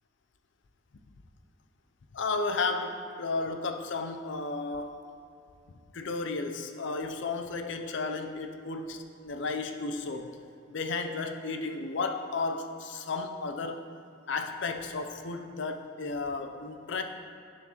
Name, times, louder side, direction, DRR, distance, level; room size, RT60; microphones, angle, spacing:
voice 1, 2.1-5.0 5.9-10.4 10.7-13.8 14.3-17.0, left 3 dB, 60° left, 6 dB, 0.5 m, -33 dB
9.0 x 6.8 x 2.9 m, 2.5 s
head